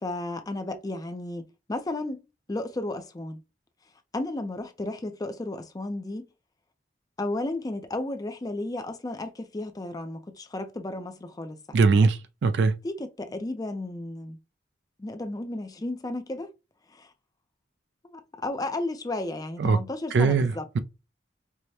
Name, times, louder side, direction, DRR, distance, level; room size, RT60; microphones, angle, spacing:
voice 1, 0.0-2.2 2.5-3.4 4.1-6.3 7.2-12.1 12.8-14.4 15.0-16.5 16.9-17.1 18.0-20.7, left 2 dB, 20° left, 0.4 m, -33 dB
voice 2, 11.7-12.2 12.4-12.7 19.6-19.8 20.1-20.8, right 4 dB, 65° right, 0.4 m, -20 dB
4.7 x 2.1 x 2.7 m
head